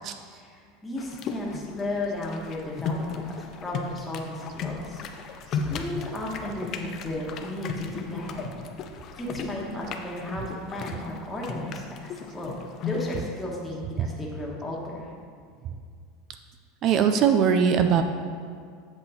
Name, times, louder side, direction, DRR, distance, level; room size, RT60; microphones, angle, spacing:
voice 1, 0.3-5.0 5.5-8.5 9.1-12.5 12.8-15.1, left 1 dB, 10° left, -4 dB, 1.3 m, -34 dB
sound 1, 1.0-13.2, left 5 dB, 35° left, 0.5 m, -36 dB
voice 2, 16.8-18.0, right 7 dB, 40° right, 7 dB, 0.4 m, -20 dB
7.9 x 5.8 x 4.3 m, 2.1 s
supercardioid pair, 155°, 0 cm